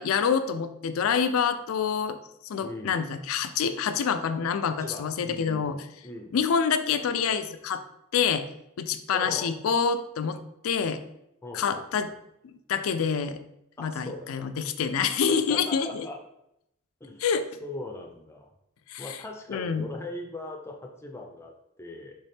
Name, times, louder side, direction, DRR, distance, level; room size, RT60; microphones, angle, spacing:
voice 1, 0.0-2.2 2.4-5.8 6.3-7.8 8.1-8.5 8.8-10.4 10.6-11.0 11.5-12.1 12.7-13.4 13.8-16.1 17.2-17.4 18.9-19.1 19.5-19.9, left 6 dB, 80° left, 10 dB, 0.4 m, -26 dB
voice 2, 2.6-3.0 4.8-6.4 9.1-9.5 11.4-12.1 13.8-14.5 15.5-16.2 17.0-17.3 17.6-18.5 19.0-22.2, left 2 dB, 10° left, 2 dB, 0.5 m, -40 dB
4.1 x 3.5 x 3.4 m, 0.81 s
head